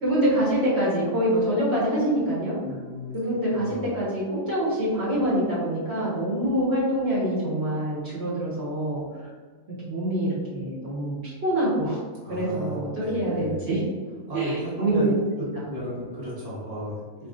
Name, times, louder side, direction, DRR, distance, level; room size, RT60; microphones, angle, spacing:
voice 1, 0.0-2.6 3.1-9.0 9.9-12.0 12.3-13.8 14.3-15.0, right 1 dB, 55° right, -8 dB, 1.4 m, -25 dB
voice 2, 2.6-3.2 3.5-3.9 12.2-13.7 14.3-15.1 15.7-17.3, equal, 15° right, -9 dB, 1.2 m, -35 dB
4.1 x 3.3 x 2.5 m, 1.5 s
omnidirectional pair, 1.4 m